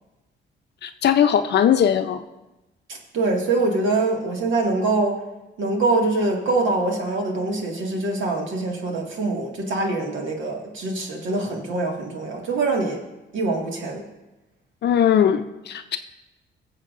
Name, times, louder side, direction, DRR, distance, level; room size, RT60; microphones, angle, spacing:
voice 1, 0.8-2.2 14.8-16.0, left 9 dB, 60° left, 9 dB, 0.5 m, -19 dB
voice 2, 2.9-5.2 5.6-13.0 13.3-14.0, right 3 dB, 75° right, 0 dB, 1.9 m, -24 dB
21.5 x 7.3 x 2.5 m, 1.0 s
cardioid pair, 90°, 20 cm